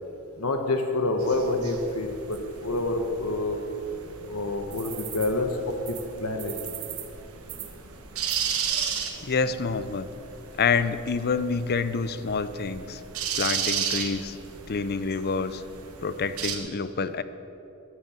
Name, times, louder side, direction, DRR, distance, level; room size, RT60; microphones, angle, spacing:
voice 1, 0.4-3.6 4.3-6.5, left 2 dB, 85° left, 5 dB, 1.2 m, -27 dB
sound 1, 1.2-16.6, right 7 dB, 75° right, 1.3 m, -35 dB
voice 2, 9.2-10.1 10.6-13.0 13.4-14.4 14.7-15.6 16.0-17.2, left 5 dB, 45° left, 13 dB, 0.6 m, -27 dB
10.5 x 10.0 x 8.7 m, 3.0 s
head